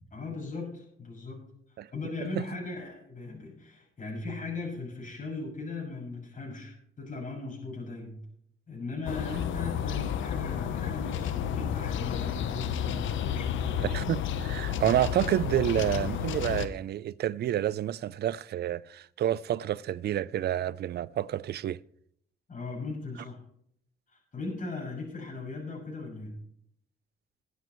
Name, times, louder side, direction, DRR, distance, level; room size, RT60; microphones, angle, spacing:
voice 1, 0.1-1.5 1.9-8.2 8.7-13.8 22.5-23.4 24.1-26.4, left 3 dB, 40° left, 6.4 m, -38 dB
sound 1, 9.1-16.7, left 9 dB, 75° left, 0.9 m, -31 dB
voice 2, 13.8-21.8, right 11 dB, 55° right, 0.5 m, -29 dB
21.5 x 9.4 x 3.1 m
cardioid pair, 90°, 20 cm